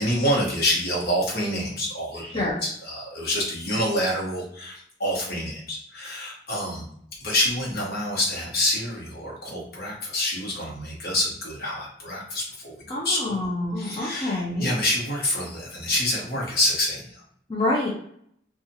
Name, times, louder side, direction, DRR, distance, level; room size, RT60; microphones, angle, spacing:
voice 1, 0.0-6.9 7.2-12.7 13.0-13.2 13.8-17.0, left 1 dB, 60° left, -4 dB, 1.1 m, -27 dB
voice 2, 2.2-2.6 12.9-14.7 17.5-17.9, left 1 dB, 30° left, -4 dB, 0.5 m, -27 dB
2.8 x 2.4 x 2.7 m, 0.68 s
head